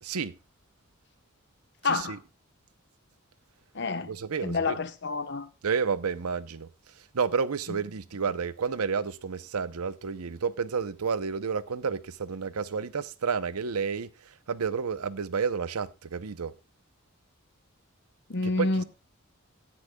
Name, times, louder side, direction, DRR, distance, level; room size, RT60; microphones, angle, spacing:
voice 1, 0.0-0.3 1.8-2.2 4.1-4.8 5.6-6.7 7.1-16.5 18.4-18.8, right 5 dB, 85° right, 0.7 m, -30 dB
voice 2, 1.8-2.2 3.7-4.1 4.4-5.5 18.3-18.8, left 3 dB, 50° left, 1.0 m, -28 dB
18.0 x 10.0 x 2.3 m
head